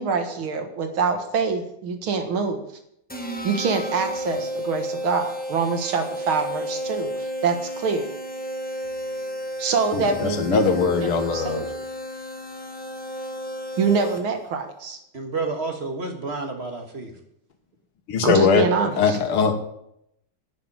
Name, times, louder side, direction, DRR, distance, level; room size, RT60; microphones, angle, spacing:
voice 1, 0.0-2.6 3.4-8.1 9.6-11.7 13.8-15.0 18.2-19.2, right 5 dB, 70° right, 6 dB, 2.3 m, -25 dB
sound 1, 3.1-14.5, right 1 dB, 5° left, 0.9 m, -33 dB
voice 2, 9.9-11.7 18.1-19.6, left 5 dB, 90° left, 7 dB, 2.3 m, -21 dB
voice 3, 15.1-17.1, right 3 dB, 30° right, 4 dB, 1.6 m, -30 dB
11.5 x 7.0 x 8.8 m, 0.77 s
omnidirectional pair, 2.3 m